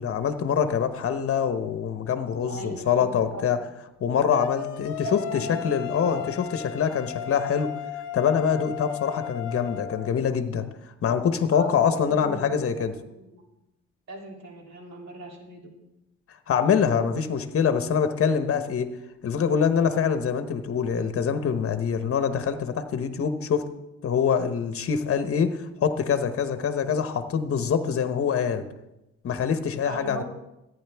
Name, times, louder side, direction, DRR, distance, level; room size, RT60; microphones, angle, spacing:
voice 1, 0.0-3.6 4.0-7.7 8.1-10.7 11.0-13.0 16.5-18.9 19.2-23.7 24.0-28.7 29.2-30.2, left 7 dB, 50° left, 9 dB, 1.0 m, -25 dB
voice 2, 2.5-3.4 5.0-6.2 11.5-13.4 14.1-15.7 29.8-30.2, right 2 dB, 60° right, 0 dB, 3.0 m, -39 dB
sound 1, 4.3-10.1, left 10 dB, 80° left, 0.8 m, -35 dB
14.0 x 9.5 x 3.5 m, 0.92 s
cardioid pair, 90°, 30 cm